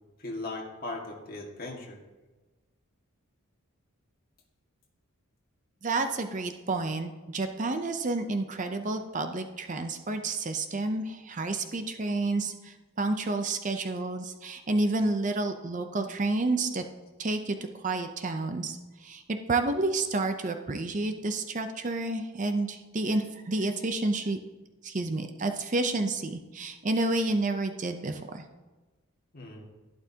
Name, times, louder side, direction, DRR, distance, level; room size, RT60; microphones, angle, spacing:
voice 1, 0.2-2.0 29.3-29.7, left 2 dB, 40° left, 0 dB, 1.8 m, -38 dB
voice 2, 5.8-16.8 17.2-24.4 24.8-28.4, right 2 dB, 35° right, 7 dB, 0.5 m, -30 dB
11.5 x 11.5 x 2.8 m, 1.2 s
head